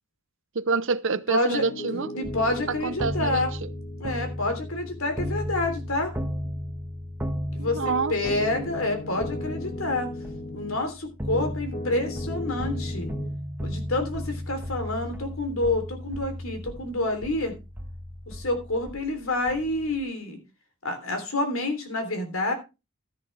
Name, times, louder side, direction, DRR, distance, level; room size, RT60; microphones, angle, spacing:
voice 1, 0.5-2.1 2.8-3.7 7.6-8.1, right 4 dB, 60° right, 0.8 m, -27 dB
voice 2, 1.3-1.6 2.1-3.5 4.0-6.1 7.5-10.1 10.5-13.1 13.6-17.5 18.3-20.4 20.8-22.5, left 2 dB, 70° left, 3.3 m, -28 dB
Piano, 1.5-10.9 11.3-13.3, left 1 dB, 45° left, 3.0 m, -39 dB
sound 1, 2.2-20.0, equal, 10° right, 1.4 m, -35 dB
12.5 x 11.0 x 3.3 m
head